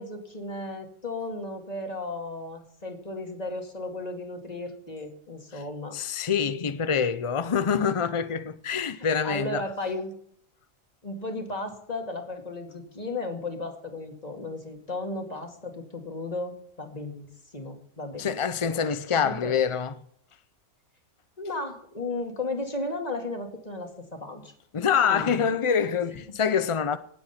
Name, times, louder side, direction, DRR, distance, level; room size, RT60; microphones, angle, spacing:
voice 1, 0.0-6.0 6.6-6.7 9.2-10.1 11.0-18.8 19.1-19.5 21.4-24.5 25.1-25.5 26.1-26.2, left 2 dB, 30° left, 2.3 m, -35 dB
voice 2, 5.9-9.6 18.2-19.9 24.7-27.0, left 7 dB, 55° left, 0.3 m, -25 dB
18.5 x 8.0 x 5.7 m
omnidirectional pair, 1.4 m